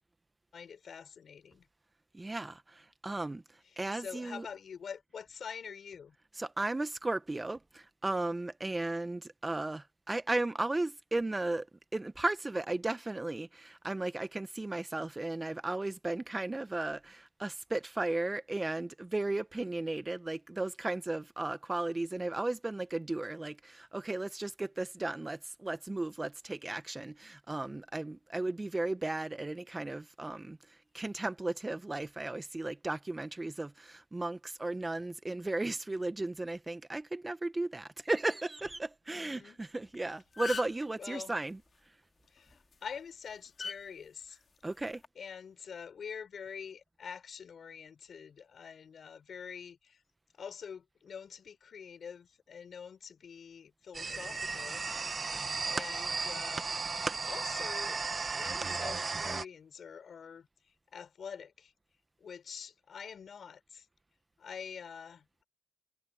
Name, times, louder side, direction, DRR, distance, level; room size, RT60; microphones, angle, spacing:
voice 1, 0.5-1.7 3.6-6.2 39.1-39.6 41.0-41.3 42.3-44.4 45.1-50.0 50.3-54.9 55.6-56.7 57.1-58.0 58.3-61.7 62.2-63.9 64.4-65.4, left 7 dB, 75° left, 6.8 m, -46 dB
voice 2, 2.1-4.5 6.4-11.7 11.9-41.6 44.6-45.0, right 2 dB, 25° right, 1.3 m, -35 dB
sound 1, 39.8-40.0 40.2-40.9 42.5-42.7 43.6-43.8 44.8-45.1, left 5 dB, 60° left, 2.6 m, -38 dB
sound 2, 53.9-59.5, right 4 dB, 50° right, 1.2 m, -35 dB
cardioid pair, 55°, 0 cm